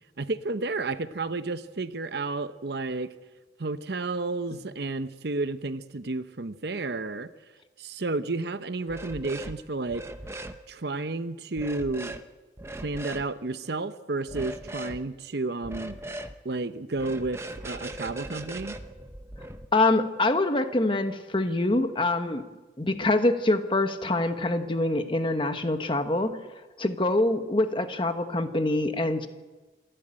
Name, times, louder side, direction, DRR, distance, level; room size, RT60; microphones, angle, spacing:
voice 1, 0.2-3.1 3.6-7.3 7.8-10.1 10.7-12.2 12.8-15.9 16.4-18.8, right 3 dB, 60° right, 12 dB, 0.7 m, -31 dB
sound 1, 8.9-9.6 9.9-10.6 11.6-12.2 12.6-13.3 14.3-15.0 15.6-16.3 16.9-19.6, right 1 dB, 15° right, 0.8 m, -39 dB
voice 2, 19.7-22.4 22.8-26.4 26.8-29.3, left 2 dB, 25° left, 8 dB, 1.2 m, -25 dB
27.0 x 11.5 x 8.9 m, 1.2 s
head